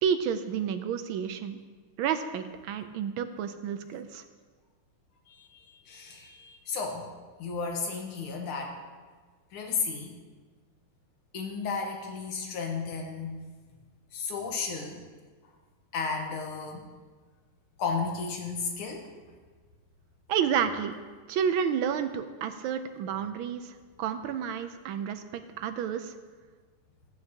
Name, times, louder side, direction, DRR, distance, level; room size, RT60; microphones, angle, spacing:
voice 1, 0.0-1.6 2.0-4.2 20.3-21.0 21.3-26.1, right 8 dB, 75° right, 9 dB, 1.3 m, -30 dB
voice 2, 5.3-7.1 7.4-8.8 9.5-10.1 11.3-13.4 14.1-15.0 15.9-16.9 17.8-19.1, left 4 dB, 80° left, 1 dB, 2.1 m, -33 dB
14.0 x 8.7 x 2.9 m, 1.5 s
omnidirectional pair, 2.4 m